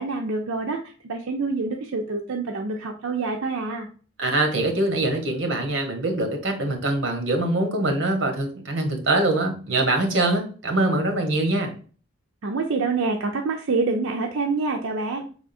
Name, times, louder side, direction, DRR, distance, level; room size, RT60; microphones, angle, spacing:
voice 1, 0.0-3.9 12.4-15.2, right 3 dB, 85° right, 2 dB, 0.5 m, -26 dB
voice 2, 4.2-11.7, right 2 dB, 65° right, 4 dB, 1.1 m, -23 dB
4.9 x 3.6 x 2.6 m, 0.41 s
head